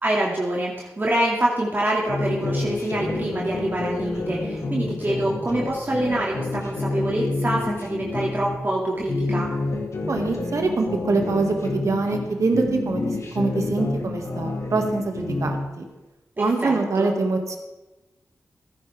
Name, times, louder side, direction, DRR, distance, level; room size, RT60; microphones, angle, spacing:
voice 1, 0.0-9.5 16.4-17.1, right 1 dB, 35° right, -4 dB, 2.2 m, -26 dB
sound 1, 2.1-8.6 9.0-12.3 12.5-15.7, left 2 dB, 60° left, 1.9 m, -28 dB
voice 2, 10.1-15.9 16.4-17.6, right 3 dB, 65° right, 3 dB, 1.9 m, -24 dB
15.5 x 10.0 x 3.5 m, 1.1 s
cardioid pair, 45°, 6 cm